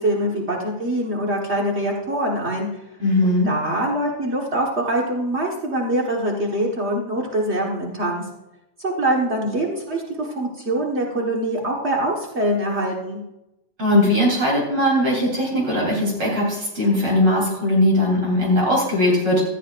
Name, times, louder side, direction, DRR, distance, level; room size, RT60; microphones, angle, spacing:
voice 1, 0.0-2.7 3.2-8.2 8.8-13.2, right 1 dB, 85° right, -1 dB, 0.6 m, -24 dB
voice 2, 3.0-3.5 13.8-19.4, left 1 dB, 40° right, -3 dB, 4.3 m, -19 dB
16.0 x 13.5 x 2.5 m, 0.92 s
omnidirectional pair, 3.8 m